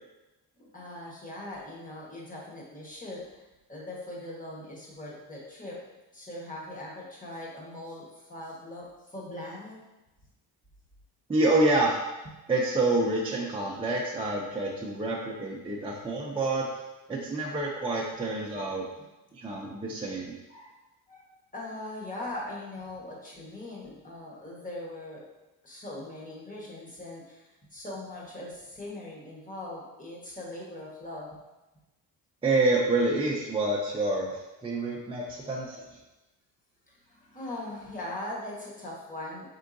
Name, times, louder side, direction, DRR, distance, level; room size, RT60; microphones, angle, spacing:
voice 1, 0.6-3.4 3.7-5.8 6.1-9.8 19.0-19.1 20.5-20.7 21.1-21.3 21.5-25.2 25.6-31.3 36.9-39.5, left 1 dB, 20° left, -4 dB, 1.2 m, -40 dB
voice 2, 11.3-12.0 12.5-16.7 17.1-18.9 19.3-20.4 32.4-34.3 34.6-35.8, right 2 dB, 15° right, -4 dB, 0.5 m, -27 dB
4.5 x 3.6 x 2.6 m, 1.0 s
cardioid pair, 100°, 42 cm